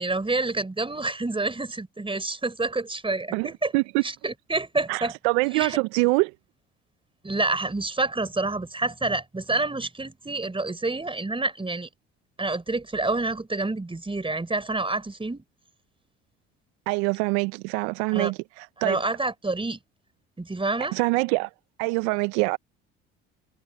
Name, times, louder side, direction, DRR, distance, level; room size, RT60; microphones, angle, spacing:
voice 1, 0.0-3.7 4.0-5.1 5.5-5.8 7.2-11.9 12.4-15.4 18.1-18.3 18.8-19.8 20.4-20.9, right 3 dB, 15° right, 4.6 m, -28 dB
voice 2, 3.3-4.0 4.9-6.3 16.9-19.0 20.9-21.5 21.8-22.6, right 26 dB, 75° right, 0.9 m, -25 dB
hypercardioid pair, 65°, 33 cm